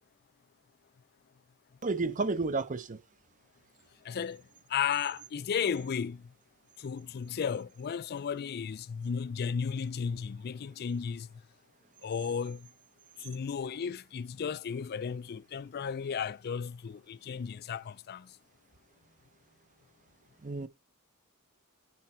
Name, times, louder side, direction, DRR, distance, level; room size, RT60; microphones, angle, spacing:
voice 1, 1.8-3.0 20.4-20.7, right 3 dB, 35° right, 0.7 m, -31 dB
voice 2, 4.0-4.4 4.7-6.3 6.8-11.3 12.0-12.7 13.2-18.3, left 7 dB, 45° left, 0.4 m, -34 dB
10.5 x 4.5 x 4.4 m
head